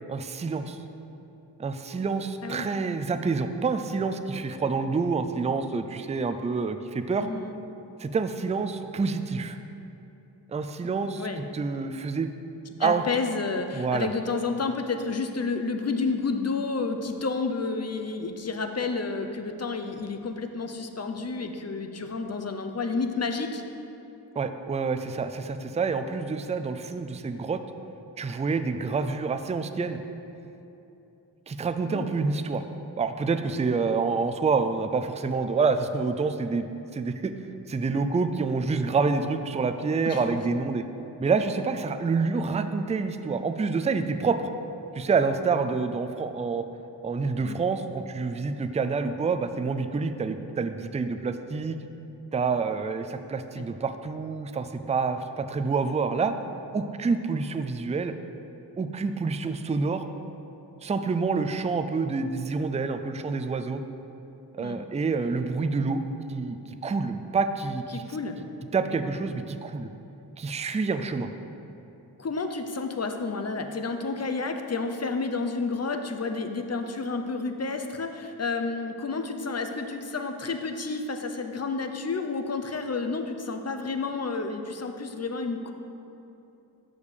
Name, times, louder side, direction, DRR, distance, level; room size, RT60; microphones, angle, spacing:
voice 1, 0.1-0.8 1.6-7.3 8.0-9.6 10.5-11.3 11.5-12.3 12.8-13.0 13.7-14.1 24.4-27.6 28.2-30.0 31.5-32.6 33.0-36.6 36.9-37.3 37.7-40.8 41.2-44.4 44.9-46.6 47.0-51.8 52.3-56.3 56.7-58.1 58.8-60.1 60.8-63.8 64.5-66.0 66.3-68.0 68.7-69.9 70.4-71.3, right 4 dB, 15° right, 9 dB, 0.3 m, -27 dB
voice 2, 7.2-7.6 11.0-11.5 12.8-23.6 31.9-32.1 40.1-40.2 47.4-47.6 53.6-53.7 64.6-64.8 67.9-68.4 72.2-85.7, left 4 dB, 35° left, 6 dB, 0.6 m, -30 dB
6.4 x 5.1 x 5.2 m, 2.9 s
cardioid pair, 45°, 42 cm